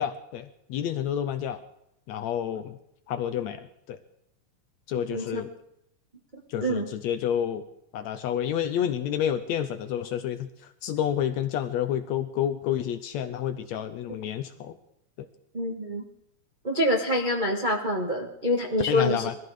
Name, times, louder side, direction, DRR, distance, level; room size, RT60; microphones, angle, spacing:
voice 1, 0.0-1.6 2.1-2.8 3.1-4.0 4.9-5.5 6.5-7.7 7.9-14.7 18.9-19.4, left 10 dB, 75° left, 9 dB, 1.8 m, -29 dB
voice 2, 5.1-5.4 6.6-6.9 14.1-14.2 15.5-16.0 16.6-19.3, left 1 dB, 30° right, 0 dB, 0.8 m, -26 dB
20.5 x 14.5 x 4.9 m, 0.78 s
omnidirectional pair, 3.6 m